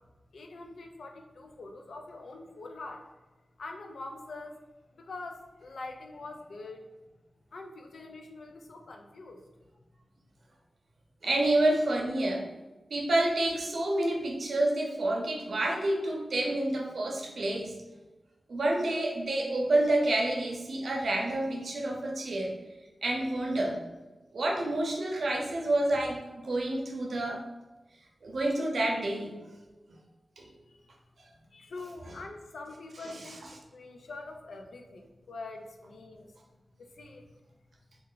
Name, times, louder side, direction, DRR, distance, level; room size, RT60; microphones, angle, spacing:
voice 1, 0.3-3.1 3.6-4.6 4.9-6.8 7.5-9.4 30.4-30.9 31.5-33.4 33.7-36.3 36.8-37.3, left 3 dB, 85° left, 3 dB, 0.5 m, -44 dB
voice 2, 11.2-12.5 12.9-17.7 18.5-22.5 23.0-23.8 24.3-27.4 28.2-29.4 30.4-30.5, right 1 dB, 65° right, 1 dB, 0.6 m, -28 dB
3.2 x 2.4 x 3.8 m, 1.1 s
wide cardioid pair, 125°, 0 cm